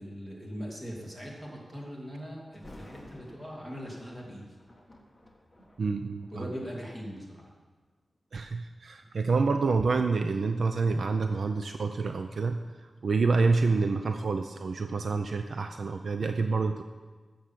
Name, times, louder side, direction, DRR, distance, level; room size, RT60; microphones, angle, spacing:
voice 1, 0.0-4.5 6.3-7.5, equal, 15° right, -2 dB, 2.7 m, -40 dB
Thunder, 2.5-7.5 8.2-8.4 9.0-11.8 12.2-12.3, left 1 dB, 10° left, 1.5 m, -54 dB
voice 2, 5.8-6.4 8.3-16.8, right 4 dB, 60° right, 7 dB, 0.5 m, -28 dB
15.0 x 6.5 x 7.4 m, 1.4 s
wide cardioid pair, 135°, 0 cm